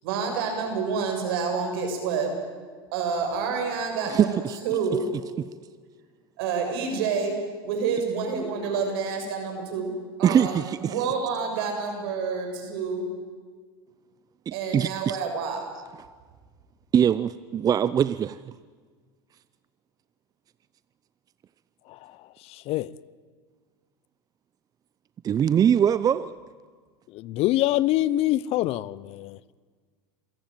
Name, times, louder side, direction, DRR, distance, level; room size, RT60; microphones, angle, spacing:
voice 1, 0.0-2.3 2.9-5.1 6.4-9.9 10.2-13.1 14.5-15.6, right 5 dB, 75° right, 6.8 m, -28 dB
voice 2, 4.1-4.6 10.2-10.9 14.5-15.2 16.9-18.4 25.2-26.3, right 9 dB, 30° right, 0.6 m, -22 dB
voice 3, 22.5-22.9 27.1-29.6, left 15 dB, 50° left, 0.7 m, -25 dB
26.5 x 16.0 x 9.1 m
supercardioid pair, 100°, 13 cm